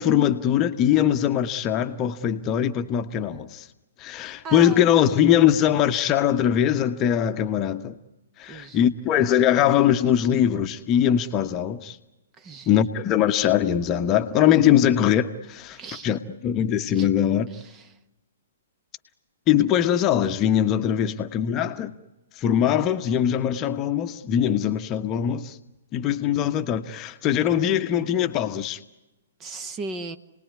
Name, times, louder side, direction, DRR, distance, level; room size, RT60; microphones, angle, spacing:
voice 1, 0.0-3.7 4.0-8.0 8.4-12.0 12.7-17.5 19.5-21.9 22.4-25.6 25.9-28.8, left 10 dB, 25° left, 1.2 m, -22 dB
voice 2, 4.4-4.9 8.5-8.9 12.4-12.7 15.7-16.2 16.9-17.1 17.5-18.0 29.4-30.2, right 3 dB, 20° right, 1.5 m, -37 dB
30.0 x 20.0 x 9.6 m
figure-of-eight pair, 120°, 0 cm